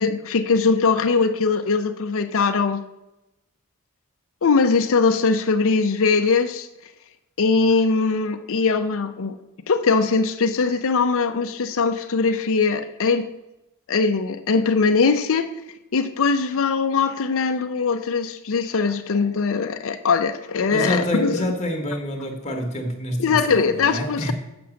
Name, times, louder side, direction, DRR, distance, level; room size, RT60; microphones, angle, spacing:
voice 1, 0.0-2.8 4.4-6.7 7.4-9.3 9.7-13.3 13.9-15.5 15.9-21.5 23.2-24.3, left 4 dB, 65° left, 0.6 m, -21 dB
voice 2, 20.7-24.3, left 1 dB, 30° left, 1.2 m, -27 dB
7.5 x 6.0 x 7.0 m
head